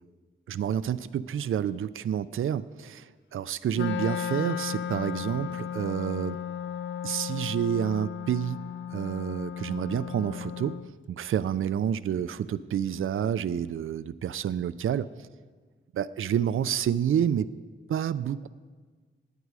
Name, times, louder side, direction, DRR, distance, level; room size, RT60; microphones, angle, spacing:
voice 1, 0.5-6.4 7.0-8.6 8.9-10.8 11.1-15.1 15.9-17.5 17.9-18.5, right 9 dB, 90° right, 14 dB, 0.4 m, -29 dB
Wind instrument woodwind instrument, 3.7-10.9, left 9 dB, 65° left, 0.4 m, -35 dB
18.0 x 9.2 x 4.8 m, 1.5 s
wide cardioid pair, 165°, 20 cm